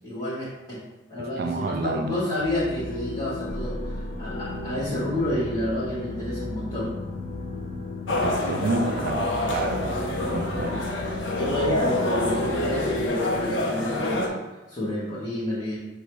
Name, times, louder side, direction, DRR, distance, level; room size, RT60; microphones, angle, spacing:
voice 1, 0.0-0.8 1.1-6.9 10.5-10.8 11.4-14.3 14.7-15.8, left 1 dB, 20° left, -12 dB, 1.1 m, -29 dB
voice 2, 1.2-2.2 8.2-10.9, right 3 dB, 55° right, 6 dB, 0.3 m, -30 dB
sound 1, 2.4-13.1, left 2 dB, 40° left, 0.4 m, -34 dB
sound 2, 8.1-14.3, left 1 dB, 90° left, 0.6 m, -27 dB
6.5 x 2.2 x 3.0 m, 1.1 s
head